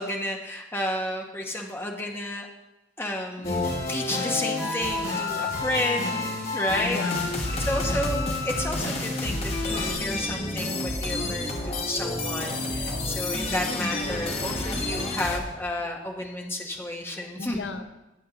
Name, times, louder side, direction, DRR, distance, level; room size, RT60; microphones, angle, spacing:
voice 1, 0.0-2.5 3.0-3.6 3.9-7.0 7.6-17.6, left 1 dB, 10° left, 1 dB, 0.9 m, -31 dB
voice 2, 3.4-3.9 6.8-7.6 17.4-17.8, left 4 dB, 80° left, 9 dB, 0.6 m, -36 dB
sound 1, 3.4-9.9, left 3 dB, 50° left, 2.3 m, -30 dB
sound 2, 7.1-15.4, left 2 dB, 35° left, 1.2 m, -30 dB
15.5 x 7.4 x 2.9 m, 1.0 s
head